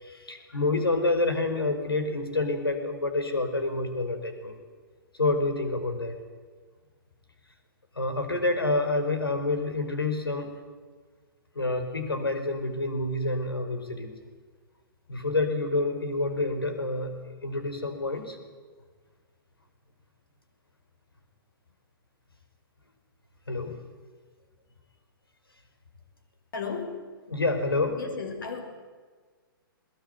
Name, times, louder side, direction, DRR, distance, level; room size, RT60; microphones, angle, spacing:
voice 1, 0.0-4.6 5.1-6.1 7.9-10.5 11.5-14.1 15.1-17.1 17.4-18.4 23.5-23.8 27.3-28.0, left 2 dB, 85° left, 7 dB, 5.0 m, -28 dB
voice 2, 26.5-27.1 27.9-28.8, left 5 dB, 65° left, 6 dB, 6.3 m, -35 dB
21.5 x 21.5 x 9.7 m, 1.5 s
figure-of-eight pair, 120°, 12 cm